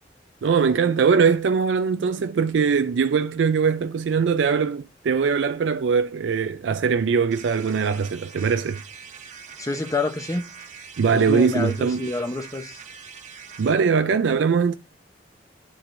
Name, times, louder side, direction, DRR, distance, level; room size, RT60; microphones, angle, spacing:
voice 1, 0.4-8.8 11.0-12.1 13.6-14.8, right 5 dB, 80° right, 0.4 m, -21 dB
sound 1, 7.3-13.8, right 6 dB, 45° right, 0.7 m, -43 dB
voice 2, 9.6-10.5 11.1-12.8, left 2 dB, 20° left, 0.7 m, -28 dB
9.9 x 4.5 x 2.5 m
head